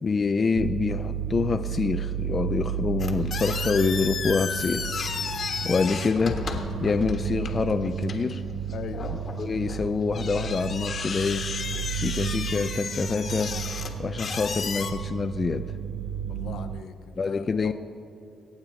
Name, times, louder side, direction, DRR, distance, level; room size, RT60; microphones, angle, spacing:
voice 1, 0.0-4.9 5.6-6.4 6.8-8.4 9.4-11.5 11.9-13.5 14.0-15.7 17.2-17.7, left 4 dB, 35° left, 8 dB, 0.4 m, -26 dB
sound 1, 0.6-16.8, right 9 dB, 75° right, 0.4 m, -33 dB
sound 2, 3.0-14.9, left 5 dB, 50° left, 1.4 m, -34 dB
voice 2, 8.7-9.0 13.9-14.1 16.3-17.7, left 7 dB, 70° left, 8 dB, 0.9 m, -40 dB
23.5 x 8.8 x 4.0 m, 2.5 s
cardioid pair, 90°, 0 cm